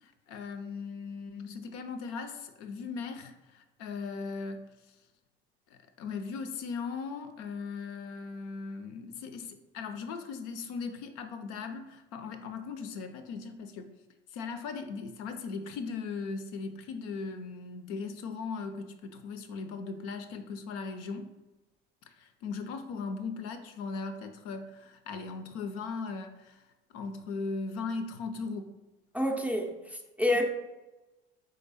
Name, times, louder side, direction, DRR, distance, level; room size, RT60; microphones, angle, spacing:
voice 1, 0.0-4.7 5.7-13.9 14.3-21.3 22.2-26.7 26.9-28.7 30.3-30.4, left 4 dB, 55° left, 0.5 m, -38 dB
voice 2, 29.1-30.5, left 1 dB, 5° right, 0.5 m, -28 dB
3.9 x 3.2 x 4.0 m
figure-of-eight pair, 65°, 31 cm